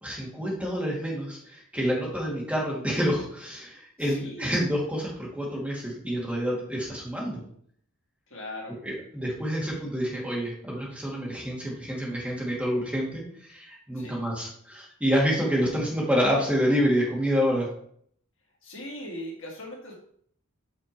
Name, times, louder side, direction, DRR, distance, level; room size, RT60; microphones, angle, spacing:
voice 1, 0.0-7.4 8.8-13.2 13.5-17.7, equal, 5° right, -4 dB, 2.3 m, -28 dB
voice 2, 4.0-4.6 8.3-8.8 13.9-14.2 18.6-20.0, left 1 dB, 60° left, -2 dB, 2.2 m, -39 dB
6.5 x 5.9 x 4.5 m, 0.63 s
head